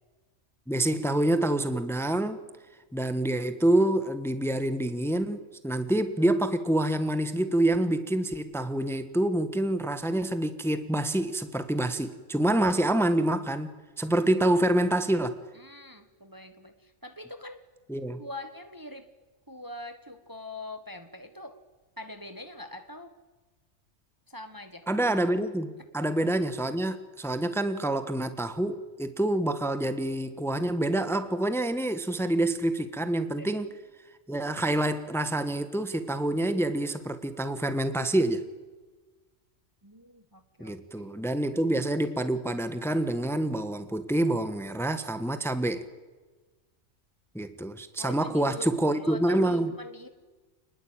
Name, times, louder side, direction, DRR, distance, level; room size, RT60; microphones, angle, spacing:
voice 1, 0.7-2.4 2.9-15.3 17.9-18.2 24.9-33.7 34.3-38.5 40.6-45.9 47.3-49.7, right 1 dB, ahead, 10 dB, 1.4 m, -27 dB
voice 2, 15.5-17.6 18.2-19.1 19.5-21.6 22.0-23.1 24.3-24.9 33.4-33.5 39.8-41.1 48.0-50.1, left 1 dB, 15° right, 8 dB, 1.4 m, -43 dB
28.5 x 20.5 x 9.1 m, 1.3 s
omnidirectional pair, 1.4 m